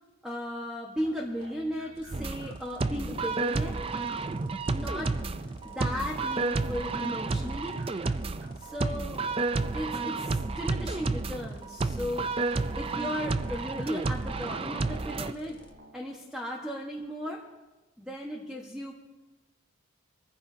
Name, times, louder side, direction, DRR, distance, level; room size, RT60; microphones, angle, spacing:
voice 1, 0.2-3.8 4.7-5.2 5.6-7.8 8.6-9.2 9.7-15.6 15.9-17.4 18.0-18.9, equal, 5° right, -2 dB, 1.4 m, -36 dB
sound 1, 1.0-2.9 4.5-10.9 12.6-16.1, right 1 dB, 70° right, 4.3 m, -54 dB
sound 2, 1.9-15.7, equal, 25° left, 1.4 m, -56 dB
sound 3, 2.1-15.3, right 3 dB, 25° right, 0.4 m, -31 dB
24.0 x 15.0 x 2.8 m, 1.1 s
head